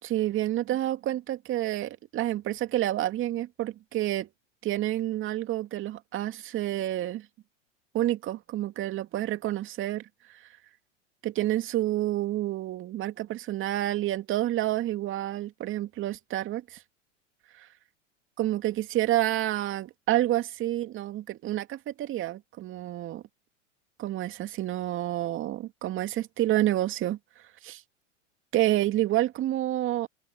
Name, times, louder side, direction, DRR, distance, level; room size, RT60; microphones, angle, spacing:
voice 1, 0.0-4.3 4.6-7.3 7.9-10.5 11.2-16.8 18.4-23.2 24.0-27.8 28.5-30.1, right 14 dB, 30° right, 2.5 m, -29 dB
open air
hypercardioid pair, 100°, 38 cm